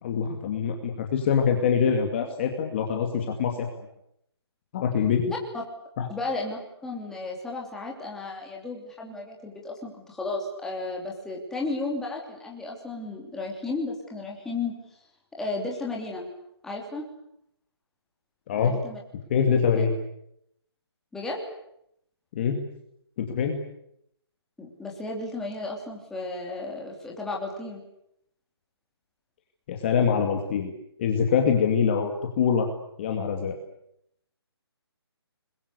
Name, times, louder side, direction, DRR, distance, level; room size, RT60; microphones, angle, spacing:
voice 1, 0.0-3.7 4.7-5.2 6.0-6.1 18.5-18.7 19.3-19.9 22.3-22.6 23.2-23.5 29.7-30.7 31.0-32.7 33.0-33.5, left 7 dB, 25° left, 3 dB, 2.3 m, -24 dB
voice 2, 6.1-14.7 15.3-16.3 16.6-17.1 18.6-19.0 19.8-19.9 21.1-21.4 24.6-27.8, left 3 dB, 5° left, -2 dB, 3.1 m, -34 dB
28.5 x 21.5 x 8.3 m, 0.76 s
hypercardioid pair, 170°, 14 cm